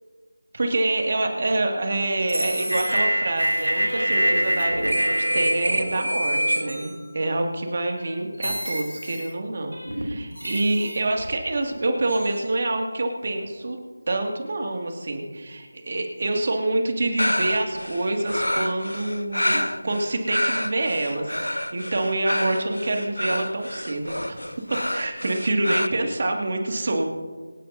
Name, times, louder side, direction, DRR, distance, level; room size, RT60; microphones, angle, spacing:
voice 1, 0.5-13.8 14.1-24.4 24.7-27.1, right 2 dB, 45° right, 3 dB, 2.2 m, -26 dB
sound 1, 2.2-7.4 8.0-8.1 8.4-9.3 9.7-11.4 12.1-12.4, equal, 90° right, 2.8 m, -25 dB
sound 2, 17.2-25.9, left 1 dB, 85° left, 0.7 m, -28 dB
26.0 x 10.0 x 2.8 m, 1.5 s
figure-of-eight pair, 165°, 0 cm